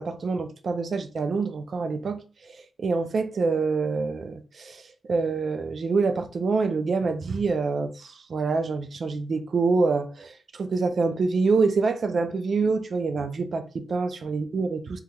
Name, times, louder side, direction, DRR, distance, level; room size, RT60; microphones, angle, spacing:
voice 1, 0.0-2.5 2.8-4.8 5.1-15.0, right 4 dB, 50° right, 0.3 m, -26 dB
3.4 x 2.9 x 2.2 m
wide cardioid pair, 165°, 0 cm